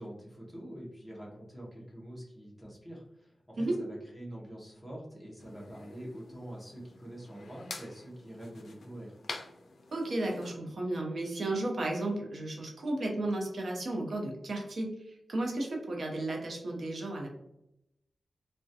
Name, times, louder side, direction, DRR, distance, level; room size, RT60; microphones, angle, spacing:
voice 1, 0.0-9.2, right 1 dB, 5° left, -5 dB, 0.6 m, -45 dB
sound 1, 5.4-10.6, left 3 dB, 70° left, 0.3 m, -47 dB
voice 2, 9.9-17.3, right 2 dB, 60° right, 0 dB, 0.6 m, -33 dB
2.3 x 2.1 x 2.6 m, 0.83 s
wide cardioid pair, 170°, 0 cm